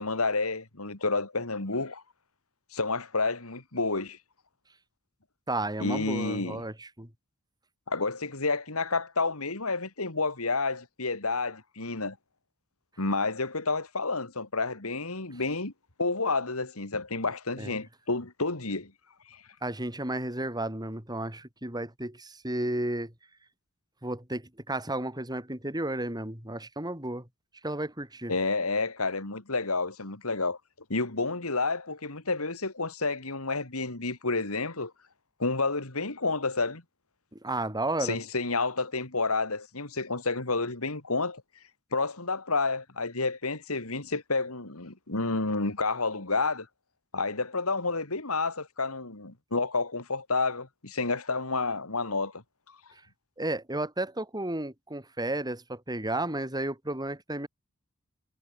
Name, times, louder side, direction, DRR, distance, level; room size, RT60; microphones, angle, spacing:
voice 1, 0.0-2.0 2.7-4.2 5.8-6.6 7.9-12.2 13.0-15.7 16.0-18.9 19.3-19.4 28.3-30.6 30.9-34.9 35.4-36.8 38.0-41.4 41.9-46.7 47.1-52.4, left 3 dB, 75° left, 3.0 m, -30 dB
voice 2, 5.5-7.1 17.6-17.8 19.6-23.1 24.0-27.3 27.6-28.3 37.3-38.2 53.4-57.5, right 1 dB, 20° right, 6.9 m, -33 dB
head